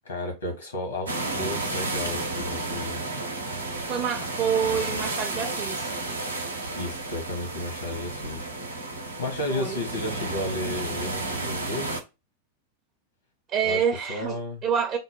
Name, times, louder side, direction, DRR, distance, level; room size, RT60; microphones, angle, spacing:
voice 1, 0.0-3.0 4.7-5.0 6.7-8.5 8.8-8.9 9.2-12.0 13.6-14.6, left 2 dB, 70° left, 1.5 m, -33 dB
sound 1, 1.1-12.0, right 2 dB, 80° right, 0.6 m, -32 dB
voice 2, 3.9-5.9 9.5-9.8 13.5-14.4 14.6-15.0, right 7 dB, 30° right, 0.6 m, -27 dB
3.9 x 2.1 x 3.7 m
figure-of-eight pair, 90°, 0 cm